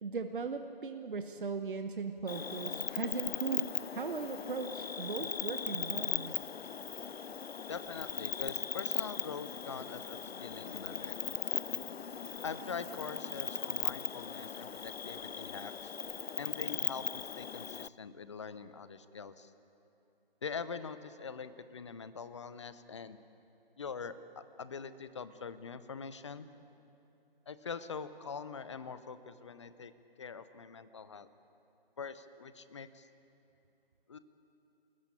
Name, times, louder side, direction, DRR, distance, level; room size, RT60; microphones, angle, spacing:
voice 1, 0.0-6.4, right 4 dB, 60° right, 7 dB, 1.1 m, -38 dB
Cricket, 2.3-17.9, left 6 dB, 90° left, 0.5 m, -38 dB
voice 2, 7.7-11.2 12.4-16.0 16.4-19.5 20.4-23.2 23.8-26.5 27.5-29.9 30.2-31.3 32.0-33.1 34.1-34.2, left 5 dB, 30° left, 14 dB, 0.8 m, -43 dB
28.5 x 14.0 x 8.8 m, 2.8 s
figure-of-eight pair, 150°, 30 cm